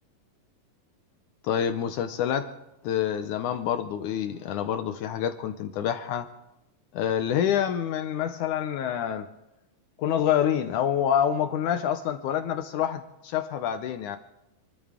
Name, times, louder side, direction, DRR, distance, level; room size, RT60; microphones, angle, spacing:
voice 1, 1.4-2.5 2.8-6.3 6.9-9.3 10.0-14.2, left 9 dB, 75° left, 8 dB, 2.1 m, -27 dB
27.5 x 12.5 x 3.6 m, 0.93 s
omnidirectional pair, 4.0 m